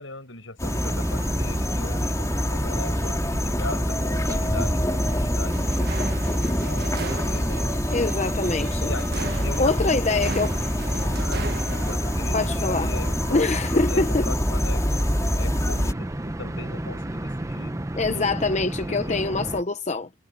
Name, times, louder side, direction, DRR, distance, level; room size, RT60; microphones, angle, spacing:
voice 1, 0.0-7.7 8.8-10.4 11.2-15.1 15.4-17.8 18.1-18.3 18.9-19.3, left 2 dB, 75° left, 7.9 m, -39 dB
sound 1, 0.6-15.9, equal, 15° left, 4.4 m, -26 dB
sound 2, 0.6-19.6, right 1 dB, 15° right, 0.7 m, -32 dB
sound 3, 5.4-11.9, right 3 dB, 50° right, 1.5 m, -36 dB
voice 2, 7.9-8.9 9.6-10.5 12.3-12.9 13.3-14.2 18.0-20.1, left 3 dB, 35° left, 0.8 m, -24 dB
head